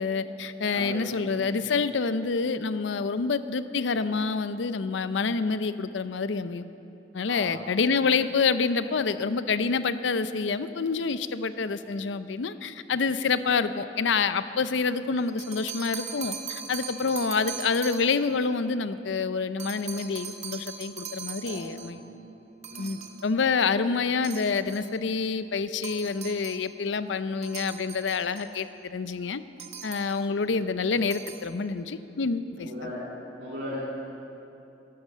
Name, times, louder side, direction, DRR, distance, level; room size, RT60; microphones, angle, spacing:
voice 1, 0.0-6.6 7.1-22.0 22.8-29.4 29.8-32.9, left 4 dB, 75° left, 13 dB, 0.5 m, -27 dB
voice 2, 0.7-1.6 7.3-7.7 17.0-17.2 21.4-21.8 22.7-22.9 32.6-33.0 33.4-33.8, equal, 80° right, -9 dB, 2.8 m, -38 dB
sound 1, 15.2-18.3 19.6-22.0 22.6-23.3 24.2-24.9 25.8-26.7 27.4-28.7 29.6-30.3 30.9-31.5, right 7 dB, 40° right, 0.9 m, -40 dB
12.0 x 11.5 x 7.4 m, 2.9 s
head